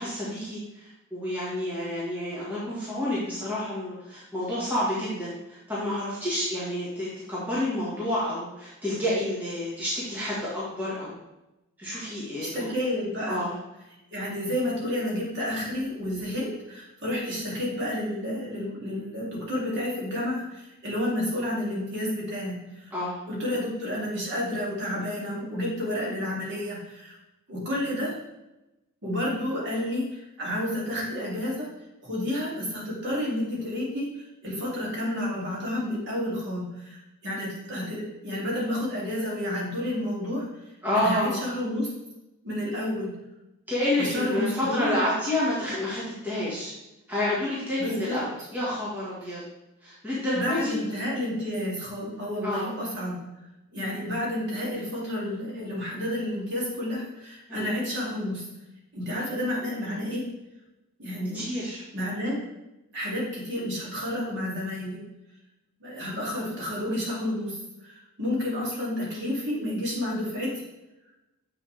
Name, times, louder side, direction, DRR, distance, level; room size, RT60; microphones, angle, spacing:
voice 1, 0.0-11.2 11.8-12.7 13.3-13.5 22.9-23.2 40.8-41.4 43.7-46.7 47.1-49.4 49.8-50.8 52.4-52.7 57.5-57.7 61.3-61.8, left 1 dB, 10° right, -8 dB, 1.8 m, -29 dB
voice 2, 12.4-13.4 14.1-22.9 23.3-27.1 27.5-28.2 29.0-31.7 32.0-40.4 40.9-41.9 42.4-43.1 44.0-45.0 47.8-48.2 50.3-53.2 53.7-58.4 58.9-60.2 61.0-61.4 61.9-62.4 62.9-65.0 65.8-70.5, left 1 dB, 55° right, -5 dB, 2.7 m, -30 dB
7.5 x 5.9 x 3.4 m, 0.96 s
head